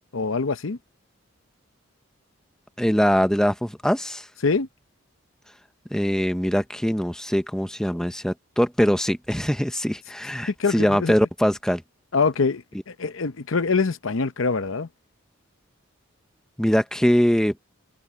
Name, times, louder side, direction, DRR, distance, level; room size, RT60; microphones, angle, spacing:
voice 1, 0.1-0.8 4.4-4.7 10.6-11.1 12.1-14.9, left 4 dB, 70° left, 0.8 m, -24 dB
voice 2, 2.8-4.3 5.9-11.8 16.6-17.5, equal, 5° left, 0.7 m, -22 dB
head